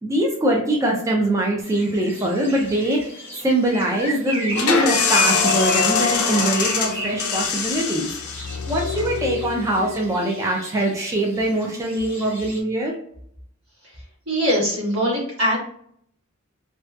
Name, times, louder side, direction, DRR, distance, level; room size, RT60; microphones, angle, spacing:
voice 1, 0.0-3.1 3.4-8.1 8.7-12.9, right 1 dB, 15° right, -1 dB, 0.3 m, -22 dB
sound 1, 1.6-12.6, right 1 dB, 10° left, 0.7 m, -36 dB
sound 2, 4.5-10.0, left 5 dB, 70° left, 0.5 m, -23 dB
voice 2, 14.3-15.6, equal, 70° right, -5 dB, 1.2 m, -21 dB
2.6 x 2.1 x 2.3 m, 0.66 s
head